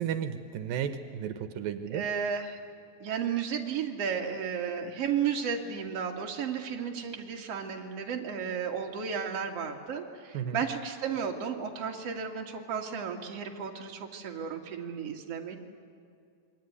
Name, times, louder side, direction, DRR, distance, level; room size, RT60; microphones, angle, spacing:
voice 1, 0.0-2.1 10.3-10.6, right 8 dB, 80° right, 9 dB, 2.8 m, -33 dB
voice 2, 1.9-2.6 3.0-15.6, right 7 dB, 45° right, 1 dB, 3.0 m, -33 dB
27.0 x 23.0 x 9.6 m, 2.3 s
omnidirectional pair, 4.1 m